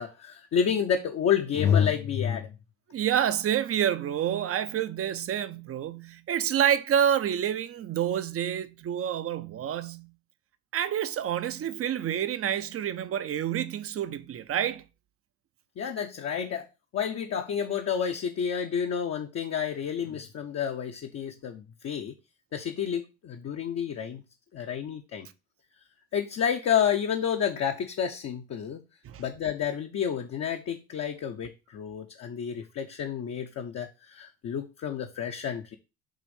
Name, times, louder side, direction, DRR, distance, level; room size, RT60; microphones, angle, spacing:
voice 1, 0.0-2.6 15.8-16.7 16.9-22.1 22.5-24.2 24.5-25.3 26.1-28.8 29.2-35.8, left 8 dB, 45° left, 0.8 m, -29 dB
voice 2, 2.9-10.1 10.7-14.8 29.0-29.2, right 9 dB, 40° right, 0.7 m, -28 dB
7.4 x 2.6 x 5.2 m
supercardioid pair, 80°, 35 cm